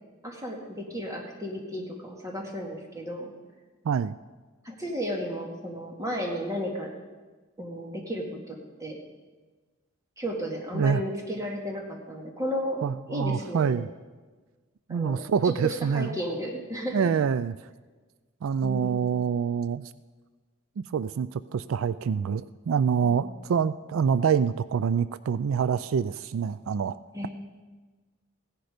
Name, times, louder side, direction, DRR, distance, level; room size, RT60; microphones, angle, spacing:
voice 1, 0.2-3.3 4.6-6.9 7.6-9.0 10.2-13.8 14.9-17.1 18.6-19.0 23.0-23.4 27.1-27.3, equal, 15° right, 0 dB, 2.0 m, -34 dB
voice 2, 3.8-4.2 10.7-11.0 12.8-13.9 14.9-16.2 16.9-17.5 18.4-19.9 20.8-27.0, right 6 dB, 80° right, 16 dB, 0.4 m, -26 dB
16.5 x 10.5 x 5.1 m, 1.3 s
head